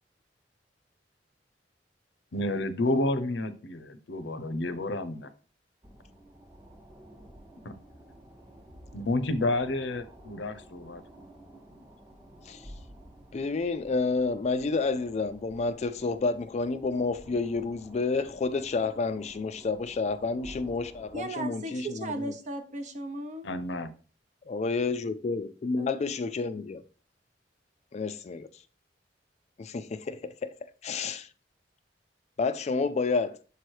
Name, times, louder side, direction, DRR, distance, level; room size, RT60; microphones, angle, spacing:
voice 1, 2.3-5.3 7.6-7.7 8.9-11.0 23.4-23.9, left 1 dB, 80° left, 0.7 m, -30 dB
sound 1, 5.8-21.3, equal, 15° right, 0.9 m, -51 dB
voice 2, 13.3-22.1 24.5-26.8 27.9-28.5 29.6-30.6 30.8-31.3 32.4-33.4, left 4 dB, 40° left, 0.4 m, -30 dB
voice 3, 21.1-23.5 25.8-25.9, right 1 dB, 40° right, 0.8 m, -36 dB
7.0 x 3.1 x 4.5 m
head